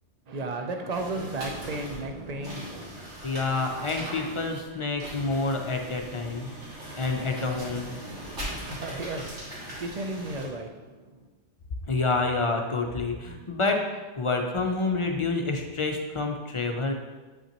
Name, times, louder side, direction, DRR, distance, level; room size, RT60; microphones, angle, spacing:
voice 1, 0.3-2.9 7.6-11.1, right 2 dB, 45° right, 5 dB, 0.6 m, -35 dB
sound 1, 0.9-10.5, right 1 dB, 80° right, 2.4 m, -40 dB
voice 2, 3.2-6.5 7.0-7.9 11.9-16.9, left 3 dB, 35° left, 3 dB, 0.5 m, -28 dB
8.0 x 5.5 x 2.9 m, 1.2 s
omnidirectional pair, 1.2 m